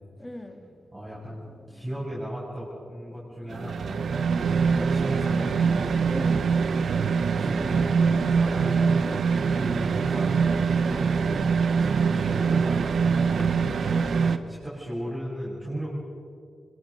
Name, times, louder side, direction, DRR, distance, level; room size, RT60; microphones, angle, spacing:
voice 1, 0.2-1.8 3.5-3.8 6.1-6.5 13.3-13.6 13.9-14.2, left 1 dB, 10° left, 5 dB, 2.2 m, -41 dB
voice 2, 0.9-4.1 4.6-5.7 7.4-8.0 8.3-9.2 9.5-10.4 10.8-11.2 11.8-13.4 14.2-15.9, equal, 15° right, -8 dB, 7.3 m, -36 dB
sound 1, 3.5-14.4, right 5 dB, 70° right, 1.1 m, -24 dB
25.5 x 22.5 x 5.4 m, 2.4 s
wide cardioid pair, 100°, 0 cm